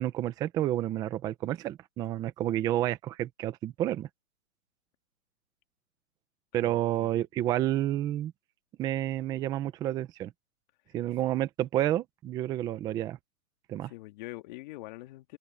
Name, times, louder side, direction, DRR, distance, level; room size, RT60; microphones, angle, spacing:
voice 1, 0.0-4.1 6.5-8.3 8.8-10.3 10.9-13.2 13.7-13.9, right 13 dB, 10° right, 0.7 m, -30 dB
voice 2, 6.6-7.1 13.9-15.4, left 19 dB, 30° left, 2.1 m, -44 dB
open air
hypercardioid pair, 150°, 44 cm